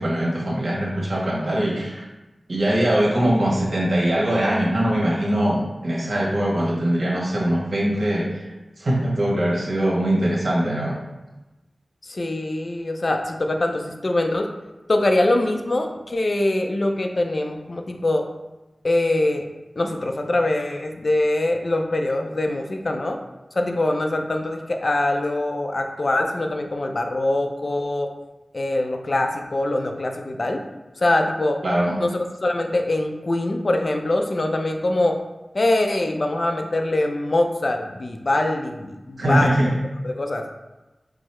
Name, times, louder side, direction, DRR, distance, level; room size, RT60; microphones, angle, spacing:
voice 1, 0.0-2.0 2.5-8.5 8.8-11.0 31.6-32.0 39.2-39.8, right 1 dB, 75° right, -4 dB, 1.1 m, -22 dB
voice 2, 12.0-14.5 14.9-18.3 18.8-19.5 19.8-23.2 23.5-28.1 28.5-30.6 31.0-31.6 32.0-35.2 35.5-39.5 40.0-40.4, left 2 dB, 55° left, 4 dB, 0.4 m, -23 dB
4.6 x 2.0 x 4.3 m, 1.1 s
wide cardioid pair, 55°, 0 cm